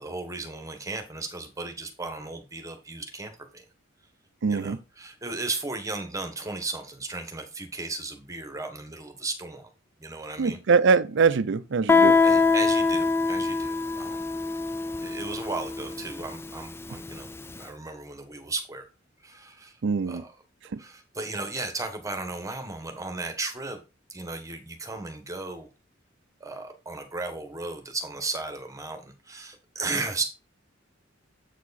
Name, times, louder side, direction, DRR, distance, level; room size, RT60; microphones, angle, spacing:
voice 1, 0.0-3.6 4.5-9.7 10.0-10.6 12.2-14.3 15.0-17.3 17.6-18.8 19.2-19.7 20.1-20.3 20.8-23.8 24.1-25.7 26.4-30.2, right 3 dB, 15° right, 1.3 m, -35 dB
voice 2, 4.4-4.8 10.4-12.2 19.8-20.2 20.7-20.8, right 5 dB, 65° right, 0.5 m, -23 dB
Guitar, 11.9-17.3, left 4 dB, 10° left, 0.4 m, -23 dB
7.9 x 4.7 x 4.1 m
head